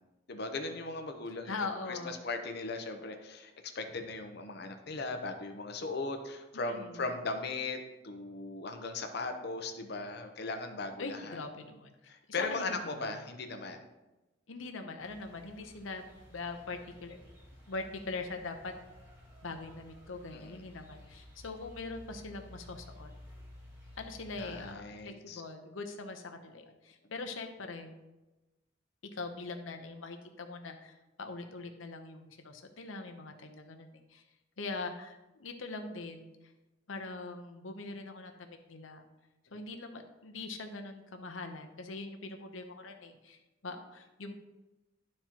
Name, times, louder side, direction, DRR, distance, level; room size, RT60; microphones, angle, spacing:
voice 1, 0.3-1.6 1.9-11.4 12.1-13.9 20.3-20.6 24.3-25.4, left 3 dB, 55° left, 6 dB, 0.7 m, -38 dB
voice 2, 1.4-2.2 6.5-7.1 11.0-11.9 12.4-13.1 14.5-16.0 16.3-17.2 17.7-18.7 19.4-23.1 24.0-27.9 29.1-34.2 34.6-36.3 36.9-39.1 39.5-44.3, left 3 dB, 90° left, 5 dB, 0.8 m, -42 dB
sound 1, 15.0-24.7, left 1 dB, 10° right, 2.6 m, -54 dB
12.0 x 4.3 x 2.9 m, 1.1 s
head